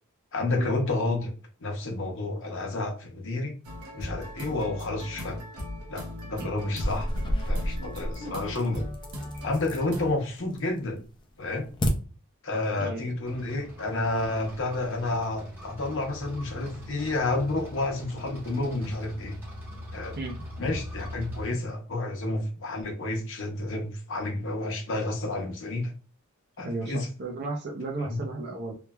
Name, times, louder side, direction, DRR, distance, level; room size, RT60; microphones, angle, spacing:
voice 1, 0.3-1.3 1.6-3.5 3.9-5.4 5.9-7.1 7.5-8.8 9.4-11.0 11.4-11.7 12.4-19.3 19.9-20.2 20.6-25.9 26.6-27.1 28.1-28.2, left 2 dB, 60° left, 2 dB, 0.7 m, -30 dB
sound 1, 3.6-10.1, left 1 dB, 85° right, 0.8 m, -39 dB
sound 2, 6.7-10.0 10.4-10.9 11.2-11.9, equal, 20° left, 0.3 m, -30 dB
voice 2, 12.8-13.1 20.2-20.4 20.7-20.8 26.6-28.7, right 2 dB, 45° right, 1 dB, 0.5 m, -34 dB
sound 3, 13.2-21.4, left 1 dB, 10° right, 1.0 m, -42 dB
3.0 x 2.2 x 2.2 m, 0.38 s
head